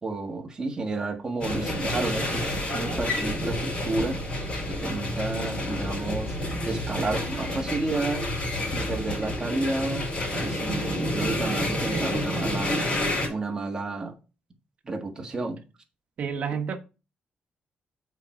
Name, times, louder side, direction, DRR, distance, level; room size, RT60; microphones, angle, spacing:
voice 1, 0.0-4.2 4.8-6.3 6.7-8.2 8.7-10.1 10.4-12.8 13.3-14.1 14.8-15.6, right 3 dB, 20° right, 1.6 m, -31 dB
sound 1, 1.4-13.3, left 1 dB, 40° left, 3.9 m, -29 dB
voice 2, 11.4-12.1 12.6-12.7 16.2-16.8, right 6 dB, 50° right, 1.3 m, -32 dB
8.8 x 4.6 x 4.3 m
cardioid pair, 155°, 3 cm